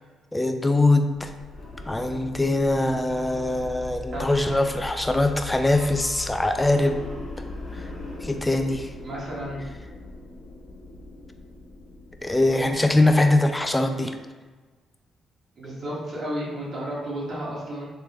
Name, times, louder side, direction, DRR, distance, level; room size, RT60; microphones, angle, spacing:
voice 1, 0.3-1.3 1.9-7.0 7.4-7.5 8.2-8.9 12.2-14.1, left 2 dB, 15° left, 6 dB, 0.4 m, -22 dB
sound 1, 1.1-13.9, left 2 dB, 40° left, 0.9 m, -40 dB
voice 2, 9.0-9.6 15.6-17.9, equal, 55° right, -6 dB, 1.4 m, -32 dB
3.6 x 3.1 x 2.9 m, 1.3 s
cardioid pair, 90°, 0 cm